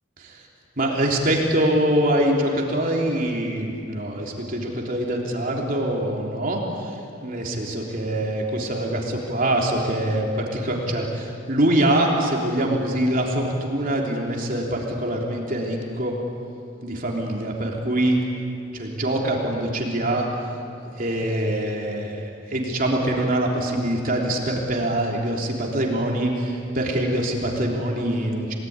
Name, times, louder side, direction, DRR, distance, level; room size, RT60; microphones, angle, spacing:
voice 1, 0.8-16.1 16.8-18.2 18.7-20.3 21.0-28.5, right 1 dB, 45° right, -1 dB, 3.4 m, -24 dB
29.0 x 19.0 x 9.6 m, 2.7 s
head